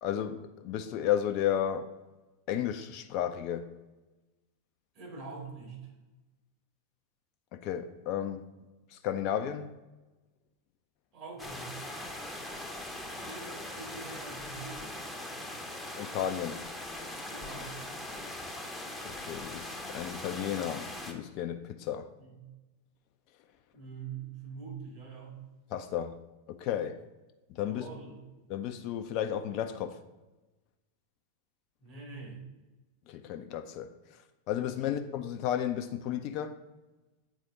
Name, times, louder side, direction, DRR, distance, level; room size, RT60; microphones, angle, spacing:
voice 1, 0.0-1.9 2.5-3.7 7.5-8.4 8.9-9.8 15.9-16.6 19.0-22.1 25.7-26.2 26.5-27.0 27.5-27.8 28.5-30.0 33.1-33.9 34.5-36.5, left 10 dB, 40° left, 0.4 m, -33 dB
voice 2, 4.9-5.8 11.1-11.9 13.2-14.9 17.3-17.8 22.2-22.4 23.7-25.4 27.6-28.2 31.8-32.4 34.7-34.9, right 4 dB, 40° right, 2.3 m, -44 dB
sound 1, 11.4-21.1, left 1 dB, 5° left, 0.8 m, -41 dB
8.2 x 4.0 x 3.7 m
figure-of-eight pair, 90°, 0 cm